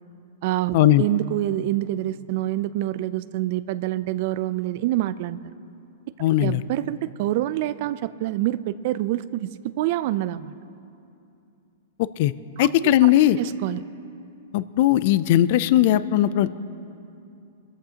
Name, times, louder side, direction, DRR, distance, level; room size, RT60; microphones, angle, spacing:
voice 1, 0.4-5.4 6.4-10.5 12.6-13.1 13.4-13.8, right 15 dB, 45° right, 16 dB, 0.4 m, -26 dB
voice 2, 6.2-6.6 12.2-12.3 12.6-13.4 14.5-16.5, left 13 dB, 50° left, 16 dB, 0.4 m, -18 dB
23.0 x 14.0 x 2.9 m, 2.7 s
hypercardioid pair, 155°, 0 cm